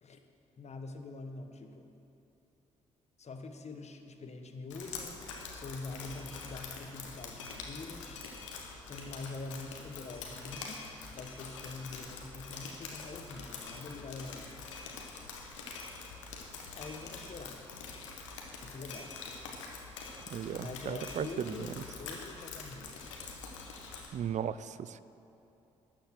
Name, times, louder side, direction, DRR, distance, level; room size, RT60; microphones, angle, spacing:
voice 1, 0.6-1.9 3.2-8.2 8.9-10.8 11.1-14.6 16.7-17.6 18.6-19.2 20.5-23.1, left 3 dB, 45° left, 6 dB, 1.3 m, -45 dB
Drip, 4.7-24.1, left 4 dB, 90° left, 1.1 m, -45 dB
voice 2, 20.3-21.3 24.1-25.0, right 9 dB, 50° right, 16 dB, 0.5 m, -36 dB
12.5 x 7.1 x 7.7 m, 2.8 s
hypercardioid pair, 40°, 15 cm